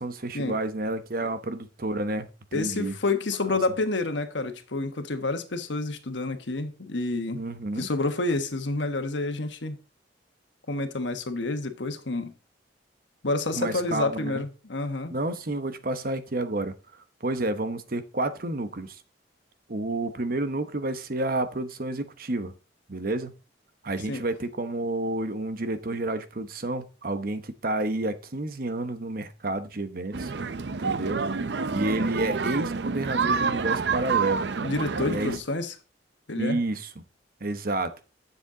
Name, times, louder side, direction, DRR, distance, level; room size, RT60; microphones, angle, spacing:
voice 1, 0.0-3.0 7.3-7.9 13.5-14.4 15.1-19.0 19.7-22.5 22.9-23.4 23.8-30.3 30.8-31.2 31.7-34.5 35.0-35.4 36.4-36.9 37.4-37.9, right 2 dB, 50° right, 0.9 m, -30 dB
voice 2, 2.5-7.4 7.8-9.8 10.7-12.3 13.2-15.1 24.1-24.2 34.6-35.7 36.3-36.6, left 2 dB, 85° left, 1.3 m, -29 dB
sound 1, 30.1-35.4, right 5 dB, 70° right, 0.6 m, -28 dB
10.0 x 7.2 x 3.8 m
head